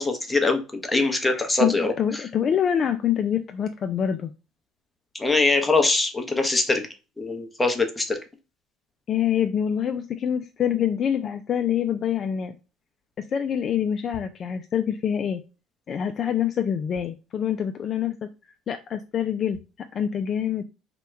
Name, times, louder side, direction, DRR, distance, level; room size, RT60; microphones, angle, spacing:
voice 1, 0.0-2.2 5.2-6.9 7.2-8.2, left 3 dB, 15° left, 4 dB, 0.8 m, -23 dB
voice 2, 1.3-4.3 9.1-12.5 13.2-15.4 15.9-18.3 18.7-19.6 19.9-20.6, left 9 dB, 45° left, 7 dB, 0.3 m, -26 dB
2.9 x 2.2 x 3.2 m, 0.31 s
hypercardioid pair, 75°, 0 cm